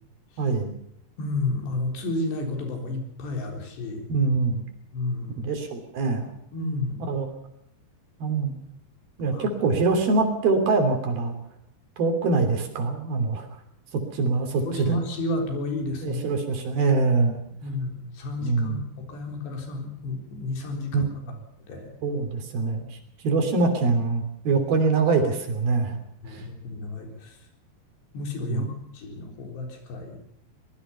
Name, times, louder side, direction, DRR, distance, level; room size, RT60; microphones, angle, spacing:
voice 1, 0.4-0.7 4.1-4.6 5.4-6.3 7.1-7.3 8.2-8.5 9.2-11.3 12.0-13.5 13.9-15.0 16.0-17.4 18.4-18.8 20.9-21.1 22.0-23.0 23.2-26.0 26.3-26.5 28.5-28.7, right 3 dB, 65° right, 6 dB, 4.9 m, -24 dB
voice 2, 1.2-4.1 4.9-5.5 6.5-7.1 9.3-9.4 14.6-16.2 17.5-21.1 21.7-21.9 26.2-27.4 28.1-30.2, left 2 dB, 85° left, 3 dB, 6.2 m, -31 dB
23.5 x 20.0 x 5.7 m, 0.74 s
omnidirectional pair, 4.8 m